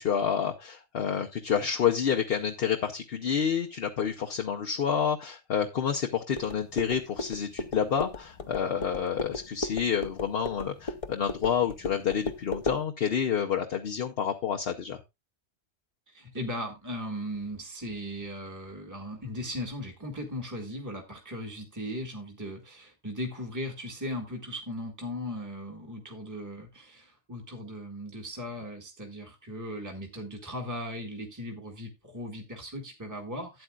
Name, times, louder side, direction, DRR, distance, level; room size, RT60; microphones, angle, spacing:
voice 1, 0.0-15.0, left 8 dB, 60° left, 1.0 m, -29 dB
sound 1, 6.3-12.8, left 3 dB, 35° left, 0.7 m, -36 dB
voice 2, 16.1-33.6, equal, 15° right, 1.6 m, -38 dB
12.5 x 8.8 x 2.4 m
omnidirectional pair, 1.1 m